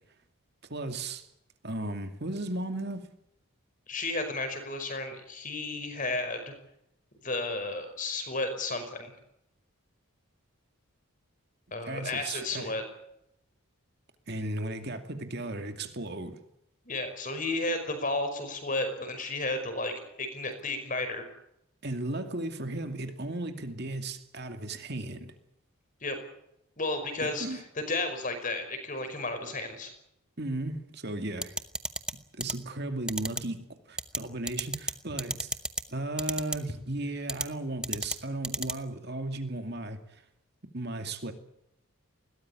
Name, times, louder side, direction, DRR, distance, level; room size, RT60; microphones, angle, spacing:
voice 1, 0.7-1.3 1.6-3.0 11.9-12.7 14.3-16.4 21.8-25.3 27.2-27.6 30.4-31.6 32.3-35.6 35.9-40.2 40.7-41.3, right 2 dB, 50° right, 2.4 m, -35 dB
voice 2, 3.9-6.5 7.2-9.1 11.7-12.8 16.9-21.3 26.0-26.2 26.8-29.9, left 2 dB, 35° left, 5.3 m, -33 dB
sound 1, 31.4-32.1 32.4-32.5 33.1-33.4 34.0-34.2 34.5-34.9 35.2-35.8 36.2-36.6 37.3-37.4 37.8-38.1 38.4-38.7, right 2 dB, 5° right, 0.9 m, -30 dB
21.0 x 18.5 x 9.8 m
head